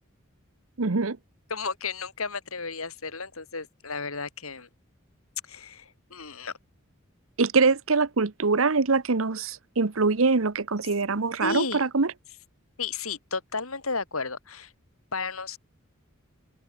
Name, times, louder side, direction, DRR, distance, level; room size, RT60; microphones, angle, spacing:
voice 1, 0.8-1.2 7.4-12.1, right 4 dB, 75° right, 1.0 m, -24 dB
voice 2, 1.5-4.7 5.5-6.5 11.4-11.8 12.8-14.7 15.1-15.6, left 4 dB, 90° left, 4.5 m, -33 dB
open air
head